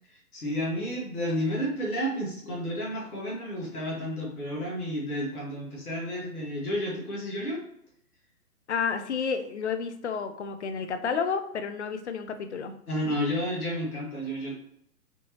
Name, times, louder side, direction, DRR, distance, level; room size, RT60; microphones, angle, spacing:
voice 1, 0.1-7.6 12.9-14.6, equal, 65° left, -3 dB, 1.5 m, -31 dB
voice 2, 8.7-12.7, left 6 dB, 50° left, 8 dB, 0.5 m, -30 dB
4.4 x 2.7 x 2.9 m, 0.74 s
figure-of-eight pair, 125°, 48 cm